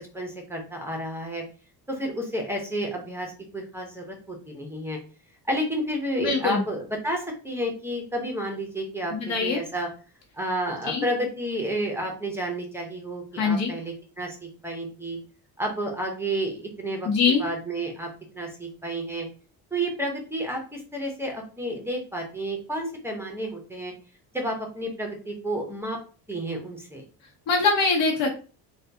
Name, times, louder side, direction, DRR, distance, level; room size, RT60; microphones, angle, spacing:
voice 1, 0.0-1.4 1.9-5.0 5.5-9.9 10.4-15.2 15.6-18.1 18.3-19.3 19.7-23.9 24.3-26.0 26.3-27.0, right 1 dB, 5° right, 1 dB, 0.6 m, -31 dB
voice 2, 6.2-6.6 9.1-9.6 10.9-11.0 13.4-13.7 17.0-17.4 27.5-28.3, left 4 dB, 80° left, 1 dB, 0.9 m, -23 dB
3.5 x 2.3 x 2.6 m, 0.37 s
cardioid pair, 140°, 43 cm